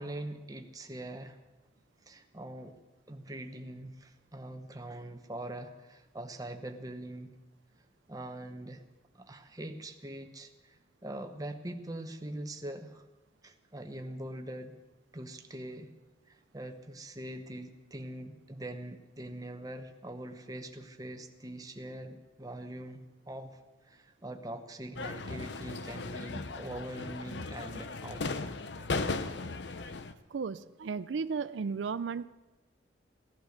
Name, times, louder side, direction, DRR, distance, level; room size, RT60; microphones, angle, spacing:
voice 1, 0.0-1.4 2.1-2.7 3.1-7.3 8.1-8.8 9.1-13.0 13.4-14.7 15.1-15.9 16.3-23.6 23.9-28.6, right 1 dB, 20° right, 6 dB, 1.0 m, -43 dB
sound 1, 24.9-30.1, left 3 dB, 70° left, 0.7 m, -37 dB
voice 2, 30.3-32.3, right 5 dB, 85° right, 14 dB, 0.4 m, -34 dB
17.0 x 11.5 x 6.6 m, 1.1 s
head